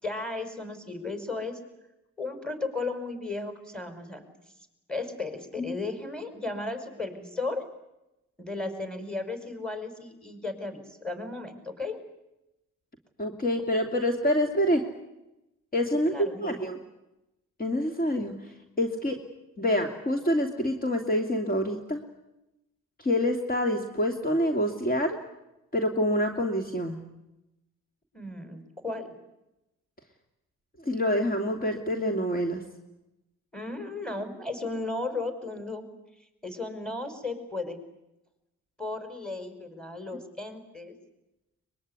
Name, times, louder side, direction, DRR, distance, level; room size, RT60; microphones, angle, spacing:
voice 1, 0.0-1.6 2.2-4.3 4.9-7.6 8.4-12.0 16.1-16.6 28.1-29.2 33.5-35.8 36.4-37.8 38.8-40.9, left 3 dB, 5° left, 8 dB, 5.2 m, -35 dB
voice 2, 13.2-14.8 15.7-16.8 17.6-19.2 19.6-22.0 23.0-25.2 25.7-27.0 30.8-32.6, equal, 30° left, 4 dB, 2.9 m, -27 dB
23.0 x 21.5 x 9.8 m, 0.93 s
cardioid pair, 90°, 30 cm